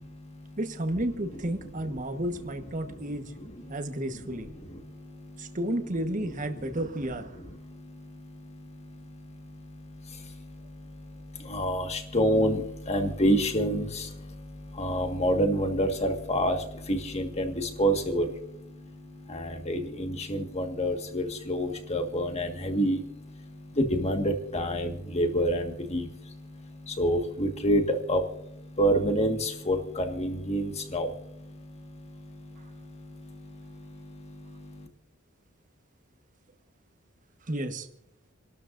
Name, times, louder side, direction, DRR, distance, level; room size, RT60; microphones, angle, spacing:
voice 1, 0.0-0.6 4.8-5.6 7.6-34.9, equal, 35° left, 5 dB, 1.7 m, -29 dB
voice 2, 0.6-3.3 3.7-4.5 5.4-7.4 14.9-15.0 37.5-37.9, right 1 dB, 40° right, 6 dB, 1.3 m, -32 dB
29.5 x 12.5 x 2.6 m, 0.76 s
head